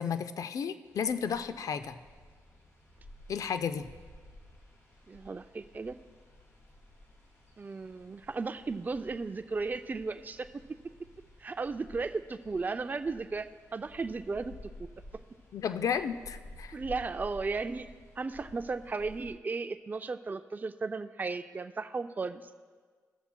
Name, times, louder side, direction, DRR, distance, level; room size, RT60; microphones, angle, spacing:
voice 1, 0.0-2.0 3.3-3.9 15.5-16.8, left 7 dB, 65° left, 11 dB, 0.5 m, -33 dB
sound 1, 0.8-19.3, left 1 dB, 50° left, 2.3 m, -53 dB
voice 2, 5.1-6.0 7.6-10.5 11.4-14.9 16.7-22.5, right 4 dB, 30° right, 9 dB, 0.4 m, -35 dB
18.0 x 6.9 x 2.2 m, 1.5 s
cardioid pair, 60°, 6 cm